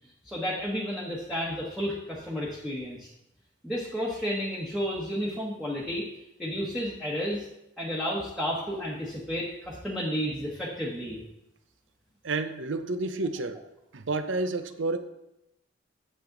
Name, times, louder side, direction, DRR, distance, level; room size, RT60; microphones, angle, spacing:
voice 1, 0.2-3.1 3.6-6.0 6.4-7.4 7.8-11.2, equal, ahead, -6 dB, 1.1 m, -32 dB
voice 2, 12.2-13.6 13.9-15.0, right 3 dB, 85° right, 10 dB, 0.7 m, -30 dB
8.6 x 7.0 x 3.9 m, 0.86 s
head